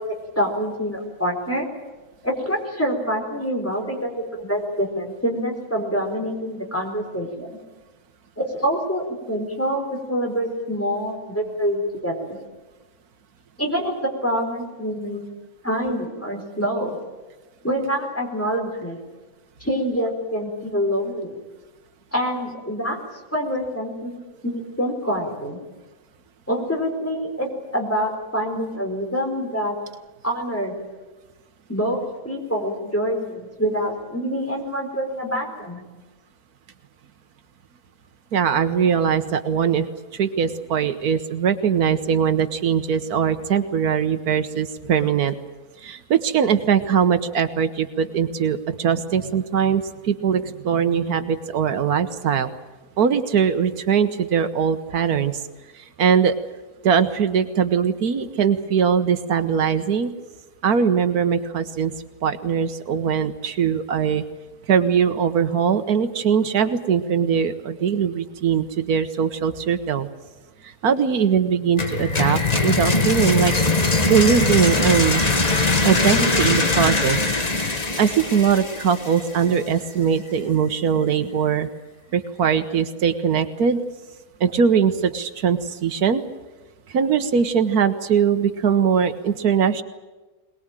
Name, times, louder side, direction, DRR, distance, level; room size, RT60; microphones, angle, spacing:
voice 1, 0.0-1.7 2.2-7.5 8.4-12.4 13.6-15.3 15.6-17.0 17.6-19.0 19.6-21.4 22.1-23.0 23.3-25.6 26.5-29.7 30.2-30.7 31.7-35.8, equal, 10° left, 1 dB, 4.4 m, -26 dB
voice 2, 38.3-39.9 40.1-45.4 45.8-52.5 53.0-55.4 55.7-56.3 56.8-60.1 60.6-61.9 62.2-64.2 64.7-70.1 70.6-73.5 74.1-75.2 75.6-77.2 77.7-81.7 82.1-83.8 84.4-86.2 86.9-89.8, right 7 dB, 80° right, 10 dB, 1.6 m, -21 dB
sound 1, 71.8-79.6, left 3 dB, 25° left, 1.5 m, -21 dB
22.5 x 20.0 x 9.0 m, 1.2 s
omnidirectional pair, 1.6 m